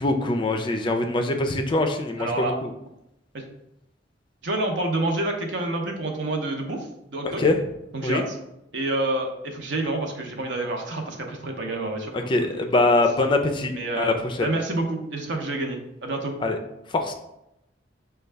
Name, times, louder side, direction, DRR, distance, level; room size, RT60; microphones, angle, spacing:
voice 1, 0.0-2.7 7.4-7.6 8.0-8.2 12.1-14.5 16.4-16.6 16.9-17.1, left 2 dB, 25° left, 5 dB, 0.4 m, -23 dB
voice 2, 2.2-2.6 3.3-3.4 4.4-7.5 7.9-8.4 8.7-12.1 12.4-12.5 13.7-14.2 14.4-16.4, right 2 dB, 65° right, 3 dB, 0.8 m, -28 dB
6.3 x 2.3 x 3.3 m, 0.84 s
head